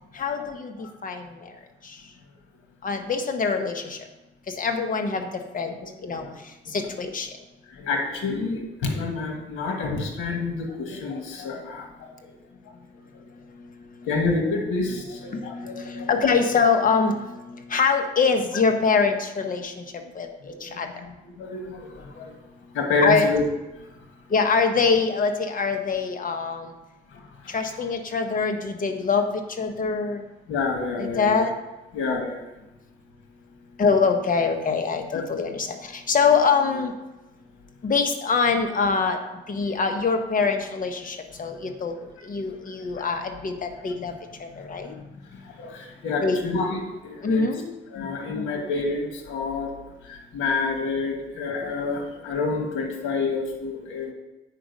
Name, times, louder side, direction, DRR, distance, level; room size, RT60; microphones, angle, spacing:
voice 1, 0.1-1.5 1.8-2.0 2.8-4.0 4.5-5.7 6.0-6.3 6.7-7.3 15.3-19.8 20.1-20.3 20.6-20.9 23.0-23.3 24.3-26.7 27.5-30.2 31.0-31.5 33.8-36.9 37.8-39.2 39.5-42.0 42.2-44.1 44.4-44.9 46.2-46.4 47.2-47.7, left 5 dB, 45° left, 6 dB, 1.1 m, -24 dB
voice 2, 7.7-12.3 13.1-13.2 14.1-16.1 20.4-22.4 22.7-23.4 27.1-27.6 30.5-31.5 31.9-32.5 35.1-35.2 43.0-43.1 43.9-44.0 44.5-45.0 45.3-47.4 47.9-49.7 50.0-54.1, left 3 dB, 85° left, 2 dB, 1.4 m, -29 dB
8.7 x 5.1 x 5.3 m, 1.0 s
cardioid pair, 90°, 20 cm